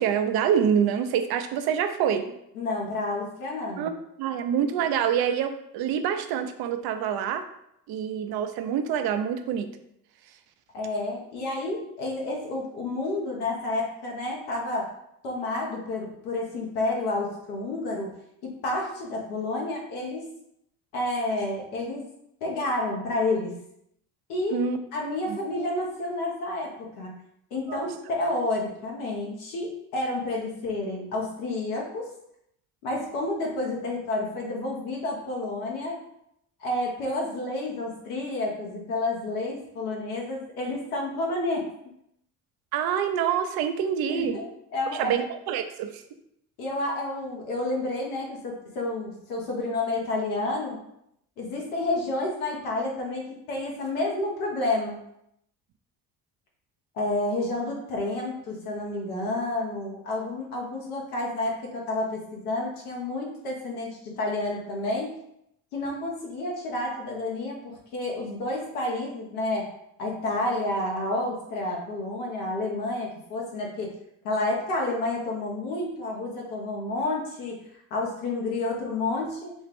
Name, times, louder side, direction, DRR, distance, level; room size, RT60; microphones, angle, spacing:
voice 1, 0.0-2.3 3.8-7.4 7.9-9.7 24.5-24.8 25.3-25.4 27.7-27.9 42.7-44.4 45.0-46.0, right 8 dB, 55° right, 8 dB, 0.6 m, -26 dB
voice 2, 2.5-3.9 10.7-14.9 15.2-18.1 18.4-20.2 20.9-22.0 22.4-23.6 24.3-24.6 24.9-27.2 27.5-32.1 32.8-36.0 36.6-41.7 44.1-45.2 46.6-50.8 51.4-55.0 56.9-65.1 65.7-69.7 70.0-73.9 74.2-79.5, left 2 dB, 80° left, -2 dB, 1.0 m, -30 dB
4.2 x 2.4 x 3.4 m, 0.77 s
hypercardioid pair, 60°, 44 cm